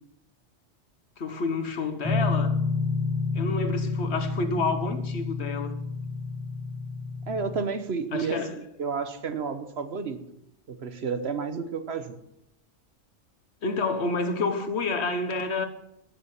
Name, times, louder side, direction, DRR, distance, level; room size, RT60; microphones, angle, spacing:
voice 1, 1.2-2.6 3.3-5.8 8.1-8.6 13.6-15.7, left 3 dB, 70° left, 1.5 m, -29 dB
sound 1, 2.0-7.6, left 4 dB, 15° left, 1.8 m, -29 dB
voice 2, 7.3-10.2 10.7-12.2, right 5 dB, 70° right, 1.3 m, -31 dB
14.0 x 7.0 x 7.5 m
omnidirectional pair, 1.2 m